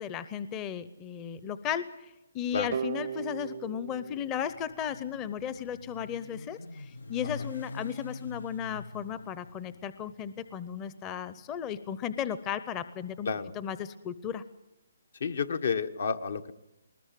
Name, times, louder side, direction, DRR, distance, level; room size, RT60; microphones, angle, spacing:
voice 1, 0.0-13.3 13.6-14.4, left 9 dB, 20° left, 14 dB, 0.7 m, -35 dB
sound 1, 2.7-5.5, right 8 dB, 55° right, 0.7 m, -38 dB
Motorcycle, 4.1-12.3, left 3 dB, 85° left, 0.9 m, -45 dB
voice 2, 15.2-16.5, left 5 dB, 65° left, 9 dB, 1.4 m, -31 dB
20.5 x 19.5 x 7.6 m, 0.95 s
hypercardioid pair, 150°, 0 cm